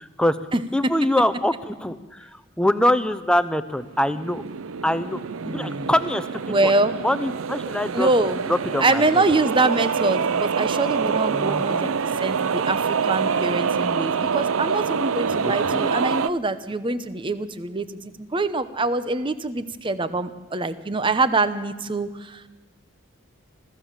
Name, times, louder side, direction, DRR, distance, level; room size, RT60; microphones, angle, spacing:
voice 1, 0.0-0.4 0.7-4.4 4.8-5.2 5.4-6.7 7.0-8.1 8.5-9.0 11.3-11.9 15.4-15.9, left 1 dB, 5° left, 12 dB, 0.7 m, -24 dB
sound 1, 3.8-16.3, right 6 dB, 80° right, 0.5 m, -26 dB
voice 2, 5.4-5.9 6.5-6.9 7.9-8.4 8.8-11.9 12.2-22.5, right 2 dB, 25° right, 13 dB, 0.8 m, -24 dB
25.0 x 14.5 x 7.4 m, 1.2 s
head